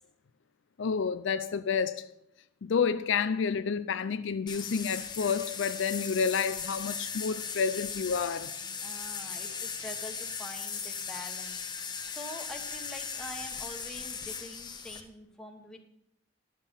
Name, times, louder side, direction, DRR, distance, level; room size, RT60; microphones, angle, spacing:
voice 1, 0.8-2.1 2.6-8.5, left 6 dB, 65° left, 0.5 m, -29 dB
sound 1, 4.5-15.0, left 6 dB, 20° left, 1.0 m, -38 dB
voice 2, 8.8-11.6 12.1-15.9, left 1 dB, 5° left, 1.3 m, -45 dB
11.0 x 7.3 x 5.5 m
head